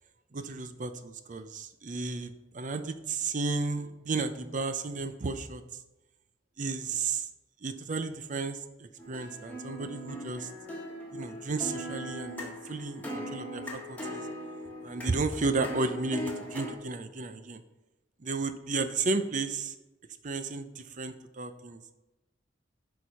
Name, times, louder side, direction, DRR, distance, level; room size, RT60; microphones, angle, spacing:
voice 1, 0.3-5.6 6.6-7.3 7.6-10.5 11.1-14.2 14.8-17.6 18.2-19.7 20.2-21.8, right 3 dB, 45° right, 10 dB, 0.6 m, -33 dB
sound 1, 9.0-16.7, equal, 10° left, 1.6 m, -39 dB
11.0 x 4.7 x 5.7 m, 1.0 s
head